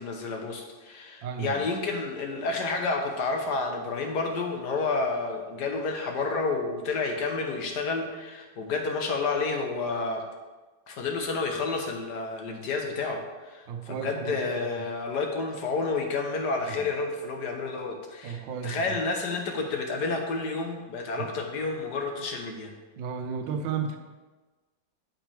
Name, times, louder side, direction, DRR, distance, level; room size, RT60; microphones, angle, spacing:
voice 1, 0.0-10.2 10.9-22.7, left 3 dB, 65° left, 3 dB, 1.7 m, -30 dB
voice 2, 1.2-1.6 13.7-14.6 16.7-16.9 18.2-18.9 21.2-21.3 23.0-24.0, right 6 dB, 85° right, 6 dB, 1.6 m, -34 dB
8.7 x 8.0 x 3.5 m, 1.2 s
omnidirectional pair, 2.0 m